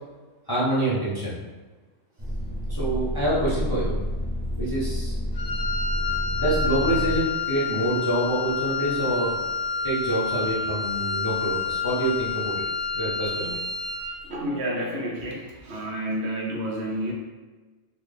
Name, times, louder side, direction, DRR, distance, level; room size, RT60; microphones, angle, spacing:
voice 1, 0.5-1.4 2.7-4.0 4.6-5.1 6.3-9.4 9.8-12.6 12.9-13.3, right 1 dB, 25° left, -9 dB, 0.6 m, -26 dB
sound 1, 2.2-7.2, equal, 40° right, 0.4 m, -29 dB
Wind instrument woodwind instrument, 5.3-14.2, left 5 dB, 60° left, 1.0 m, -29 dB
voice 2, 14.2-17.1, equal, 65° right, -2 dB, 0.8 m, -30 dB
3.9 x 2.1 x 3.3 m, 1.3 s
omnidirectional pair, 1.3 m